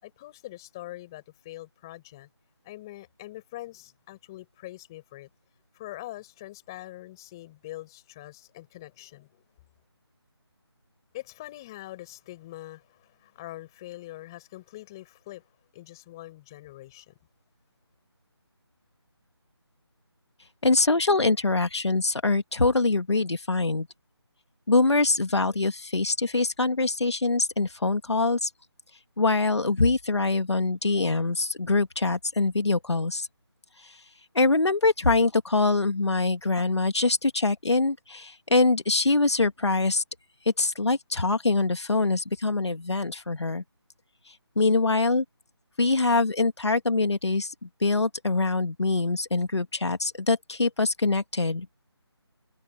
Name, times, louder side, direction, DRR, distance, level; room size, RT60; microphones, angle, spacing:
voice 1, 0.0-2.3 2.6-5.3 5.7-9.4 11.1-15.4 15.7-17.1, left 16 dB, 10° left, 7.8 m, -43 dB
voice 2, 20.6-23.9 24.7-28.5 29.2-33.3 33.8-34.0 34.3-40.0 40.6-43.6 44.3-45.2 45.8-51.7, left 3 dB, 80° left, 2.2 m, -24 dB
figure-of-eight pair, 180°, 14 cm